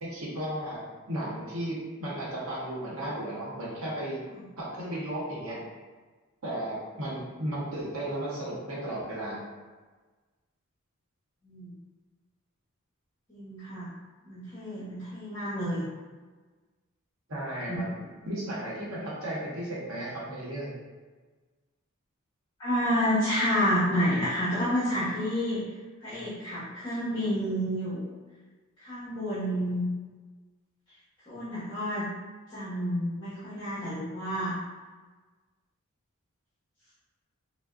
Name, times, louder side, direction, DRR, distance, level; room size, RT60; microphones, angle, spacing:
voice 1, 0.0-0.8 1.1-4.2 4.6-5.6 6.4-9.4 17.3-20.7, right 1 dB, 75° right, -5 dB, 0.9 m, -34 dB
voice 2, 13.3-13.9 14.2-15.9 17.7-17.8 22.6-25.6 26.0-28.1 28.8-29.8 31.3-32.1 32.5-34.6, equal, 20° left, -14 dB, 0.8 m, -29 dB
3.3 x 2.1 x 2.4 m, 1.4 s
head